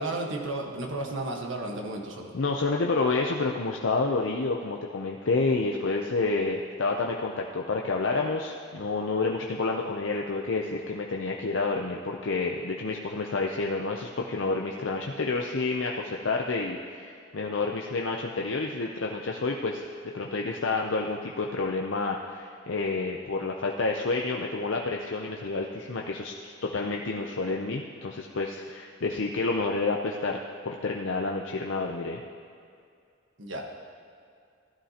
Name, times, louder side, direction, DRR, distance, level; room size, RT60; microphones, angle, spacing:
voice 1, 0.0-2.3 33.4-33.8, right 2 dB, 65° right, 1 dB, 1.3 m, -33 dB
voice 2, 2.3-19.9 20.1-26.3 26.6-30.4 30.6-32.2, left 3 dB, 70° left, 0 dB, 0.6 m, -29 dB
15.5 x 11.0 x 2.9 m, 2.4 s
head